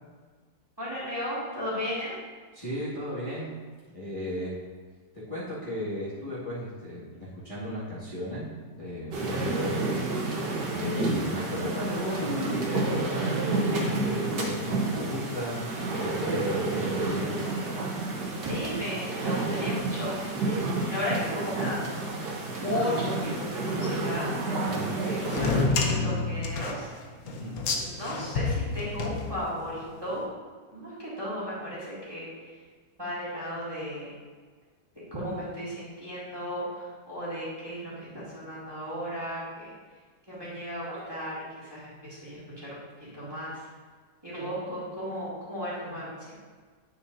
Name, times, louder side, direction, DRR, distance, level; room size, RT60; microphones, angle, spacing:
voice 1, 0.8-2.2 18.4-20.2 20.5-21.9 22.5-24.3 24.6-24.7 25.0-26.9 27.7-30.2 30.7-32.6 33.0-34.1 35.1-40.0 40.3-43.7 44.2-46.3, equal, 15° right, -9 dB, 2.2 m, -35 dB
voice 2, 2.5-3.5 3.9-4.6 5.1-9.8 10.7-15.7 16.0-17.3 24.7-25.0 27.2-27.6, left 1 dB, 20° left, -11 dB, 2.0 m, -35 dB
sound 1, 9.1-25.7, right 2 dB, 75° right, 1.7 m, -30 dB
sound 2, 25.2-29.8, left 4 dB, 60° left, 1.2 m, -29 dB
9.1 x 6.8 x 2.7 m, 1.5 s
omnidirectional pair, 1.9 m